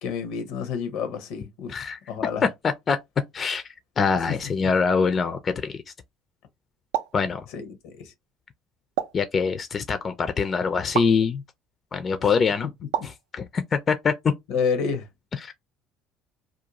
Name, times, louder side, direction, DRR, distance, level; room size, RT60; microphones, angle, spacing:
voice 1, 0.0-2.5 4.3-4.4 7.5-8.1 12.6-12.7 13.0-13.1 14.5-15.1, left 6 dB, 75° left, 0.6 m, -29 dB
voice 2, 1.7-2.0 2.6-3.0 3.3-3.6 4.0-5.8 7.1-7.5 9.1-11.4 11.9-12.7 13.0-14.3 15.4-15.5, left 5 dB, 40° left, 0.4 m, -24 dB
sound 1, 6.9-7.2 9.0-9.3 10.9-11.2 12.9-13.2, right 11 dB, 85° right, 0.3 m, -28 dB
2.4 x 2.2 x 2.9 m
hypercardioid pair, 75°, 0 cm